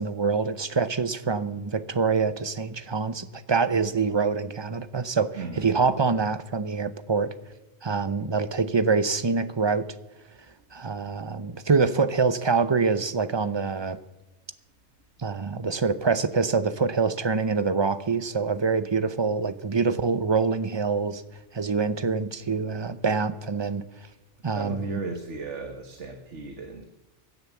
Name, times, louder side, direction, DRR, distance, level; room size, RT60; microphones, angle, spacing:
voice 1, 0.0-7.3 7.8-9.9 10.7-14.0 15.2-21.2 21.5-23.8 24.4-25.0, right 4 dB, 30° right, 13 dB, 0.6 m, -25 dB
voice 2, 5.4-5.7 24.5-26.9, right 3 dB, 85° right, 5 dB, 1.7 m, -36 dB
16.5 x 10.5 x 7.2 m, 1.0 s
omnidirectional pair, 1.2 m